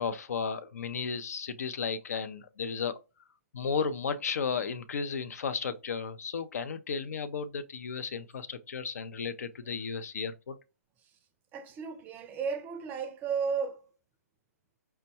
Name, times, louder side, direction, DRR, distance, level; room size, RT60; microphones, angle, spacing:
voice 1, 0.0-3.0 3.5-10.6, left 5 dB, 75° left, 0.4 m, -34 dB
voice 2, 11.5-13.9, right 6 dB, 20° right, 0.4 m, -34 dB
4.4 x 2.1 x 2.7 m
hypercardioid pair, 135°, 8 cm